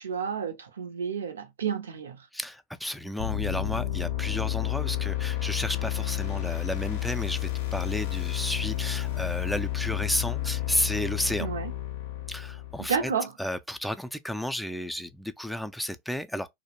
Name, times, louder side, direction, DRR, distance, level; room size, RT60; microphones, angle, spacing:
voice 1, 0.0-2.3 11.4-11.7 12.8-13.3, right 6 dB, 85° right, 0.5 m, -31 dB
voice 2, 2.3-11.5 12.3-13.1 13.4-16.5, left 1 dB, ahead, 0.3 m, -32 dB
sound 1, 3.2-13.0, left 13 dB, 70° left, 0.5 m, -31 dB
2.4 x 2.0 x 2.8 m
hypercardioid pair, 90°, 0 cm